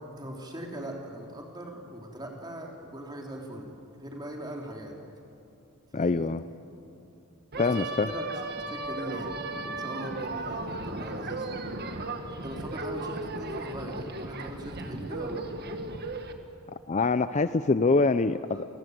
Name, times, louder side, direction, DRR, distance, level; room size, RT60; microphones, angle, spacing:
voice 1, 0.2-3.7 4.0-4.9 5.9-6.3 7.5-8.2 8.7-9.3 9.7-11.5 12.3-15.4 18.5-18.6, right 1 dB, 20° right, 0 dB, 3.3 m, -40 dB
voice 2, 5.9-6.4 7.6-8.1 16.9-18.7, left 3 dB, 35° left, 13 dB, 0.5 m, -24 dB
sound 1, 7.5-16.3, right 2 dB, 50° right, 1.7 m, -36 dB
29.0 x 17.5 x 9.4 m, 2.7 s
head